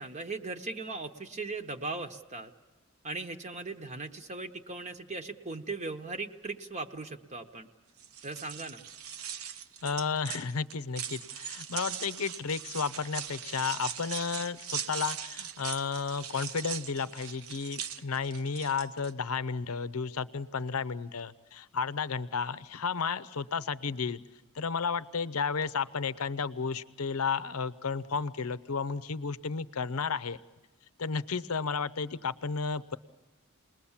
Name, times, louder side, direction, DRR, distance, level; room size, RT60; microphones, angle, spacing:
voice 1, 0.0-2.5 3.0-7.7 8.2-8.8, right 3 dB, 35° right, 5 dB, 0.9 m, -38 dB
sound 1, 8.0-19.1, right 8 dB, 90° right, 0.9 m, -40 dB
voice 2, 9.8-24.2 24.5-30.4 31.0-33.0, left 5 dB, 85° left, 15 dB, 0.7 m, -33 dB
29.0 x 20.5 x 7.3 m, 1.1 s
head